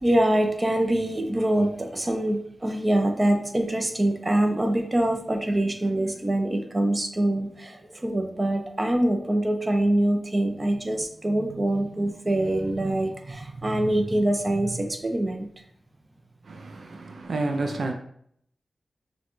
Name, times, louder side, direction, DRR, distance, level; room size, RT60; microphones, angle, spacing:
voice 1, 0.0-15.5, right 1 dB, 30° right, 0.6 m, -24 dB
voice 2, 16.5-17.9, right 2 dB, 75° right, 0.5 m, -30 dB
6.2 x 2.3 x 3.1 m
wide cardioid pair, 90°, 0 cm